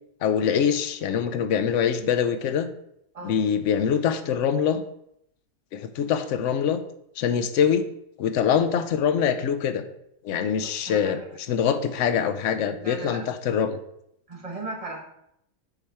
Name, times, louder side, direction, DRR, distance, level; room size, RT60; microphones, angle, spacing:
voice 1, 0.2-2.7 3.2-4.8 5.7-6.8 7.2-7.8 8.2-9.8 10.2-11.2 11.5-13.8, left 7 dB, 70° left, 8 dB, 0.8 m, -24 dB
voice 2, 10.6-11.2 12.7-13.3 14.3-15.0, right 2 dB, 25° right, 0 dB, 1.1 m, -37 dB
7.1 x 4.4 x 3.4 m, 0.76 s
omnidirectional pair, 1.6 m